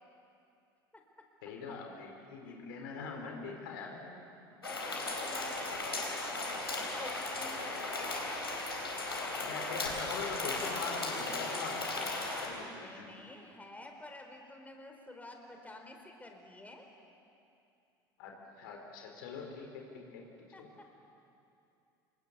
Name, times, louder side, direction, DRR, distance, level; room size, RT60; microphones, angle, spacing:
voice 1, 1.4-4.3 9.4-13.1 18.2-20.2 20.6-20.7, left 4 dB, 70° left, 1 dB, 4.5 m, -43 dB
voice 2, 2.4-2.7 4.5-8.3 12.8-16.9 20.5-20.9, left 1 dB, 10° left, 3 dB, 4.4 m, -50 dB
sound 1, 4.6-12.5, left 2 dB, 90° left, 4.1 m, -36 dB
28.0 x 22.0 x 8.3 m, 2.6 s
figure-of-eight pair, 65°, 12 cm